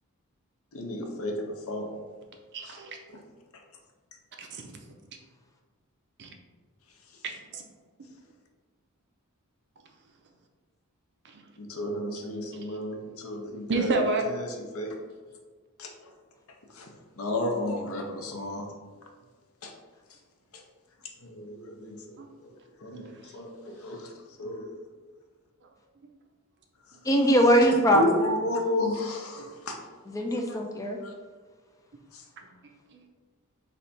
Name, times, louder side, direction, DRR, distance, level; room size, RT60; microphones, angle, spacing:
voice 1, 0.7-1.9 2.6-2.8 3.1-3.2 11.6-14.0 14.3-15.0 15.8-15.9 16.7-16.9 17.2-18.7 19.6-19.7 20.5-20.6 21.2-22.2 22.4-22.5 22.8-24.1 24.4-24.7 27.6-29.8 30.4-30.6 31.0-31.1 32.1-32.2, left 1 dB, 70° left, 2 dB, 0.7 m, -32 dB
voice 2, 2.5-3.2 4.4-4.7 6.2-6.3 7.2-7.6 11.2-11.4 13.7-14.3 22.2-22.3 22.9-23.1 32.9-33.0, right 3 dB, 50° right, 3 dB, 0.5 m, -30 dB
voice 3, 27.0-28.0 30.1-31.0, equal, 15° left, 2 dB, 0.4 m, -21 dB
3.3 x 2.7 x 4.1 m, 1.4 s
head